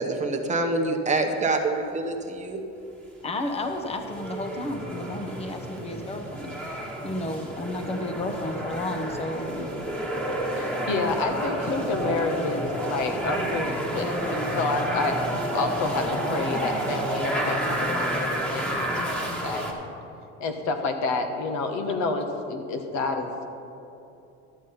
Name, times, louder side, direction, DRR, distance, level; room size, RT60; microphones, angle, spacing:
voice 1, 0.0-2.6, right 2 dB, 25° right, 3 dB, 1.0 m, -26 dB
voice 2, 3.2-9.7, left 1 dB, 20° left, 6 dB, 0.9 m, -32 dB
sound 1, 3.6-19.7, right 1 dB, 5° left, 1.6 m, -30 dB
voice 3, 10.6-15.2 15.5-19.9 20.4-23.5, left 3 dB, 65° left, 5 dB, 1.3 m, -29 dB
12.5 x 7.3 x 5.6 m, 2.8 s
cardioid pair, 125°, 31 cm